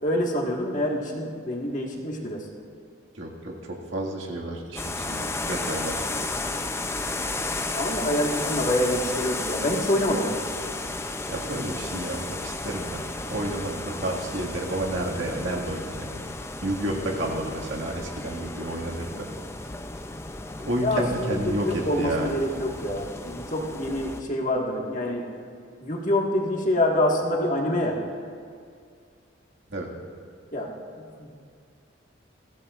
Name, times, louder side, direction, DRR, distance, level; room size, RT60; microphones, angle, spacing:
voice 1, 0.0-2.5 7.7-10.4 20.8-25.2 25.8-28.0 30.5-30.7 31.0-31.3, left 1 dB, 40° left, -1 dB, 1.7 m, -26 dB
voice 2, 3.1-6.1 11.3-16.3 16.6-19.3 20.6-22.3 29.7-29.9, right 1 dB, 75° right, -1 dB, 1.9 m, -31 dB
sound 1, 4.8-24.2, left 2 dB, 15° left, 0.5 m, -33 dB
22.0 x 15.5 x 2.5 m, 2.2 s
head